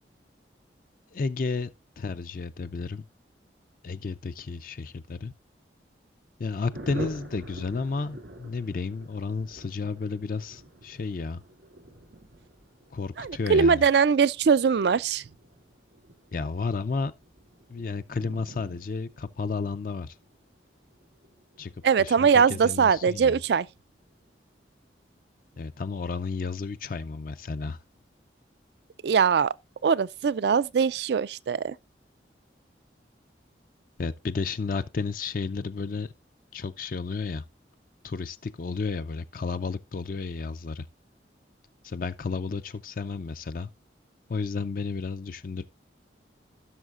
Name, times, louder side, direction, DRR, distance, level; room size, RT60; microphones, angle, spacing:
voice 1, 1.1-1.7 2.0-3.0 3.8-5.3 6.4-11.4 12.9-13.8 16.3-17.1 17.7-20.1 21.6-21.7 22.0-23.4 25.6-27.8 34.0-36.1 36.5-37.4 38.0-40.9 41.8-43.7 44.3-45.6, left 4 dB, 50° left, 0.4 m, -32 dB
Thunder, 6.7-22.8 23.1-23.2 23.5-23.6 23.9-24.3, equal, 90° right, 2.5 m, -47 dB
voice 2, 13.2-15.2 21.8-23.7 29.0-29.5 29.8-31.8, right 6 dB, 65° right, 0.4 m, -22 dB
15.5 x 6.4 x 2.4 m
head